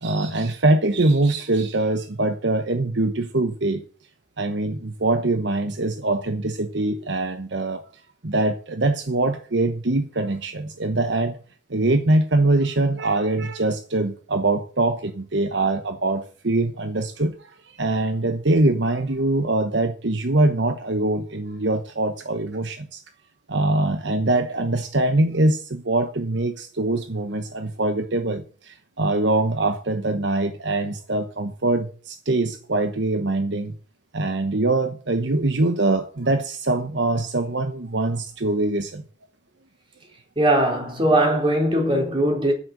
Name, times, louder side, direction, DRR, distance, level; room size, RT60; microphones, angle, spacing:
voice 1, 0.0-3.8 4.4-7.8 8.2-11.4 11.7-17.5 17.8-23.0 23.5-33.7 34.1-39.0, right 2 dB, 65° right, 1.1 m, -23 dB
voice 2, 40.4-42.5, right 1 dB, 25° right, 4.2 m, -20 dB
10.0 x 7.7 x 7.9 m
head